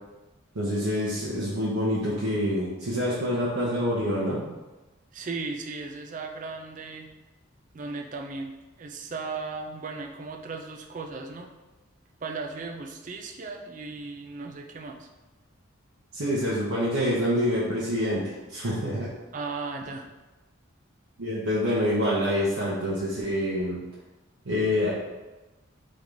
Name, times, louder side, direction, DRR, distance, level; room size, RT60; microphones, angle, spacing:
voice 1, 0.5-4.5 16.1-19.1 21.2-23.8 24.4-24.9, equal, 90° right, -7 dB, 0.8 m, -26 dB
voice 2, 5.1-7.1 7.7-11.5 12.2-15.1 19.3-20.1, right 4 dB, 40° right, 3 dB, 0.4 m, -36 dB
3.8 x 3.6 x 3.4 m, 1.1 s
head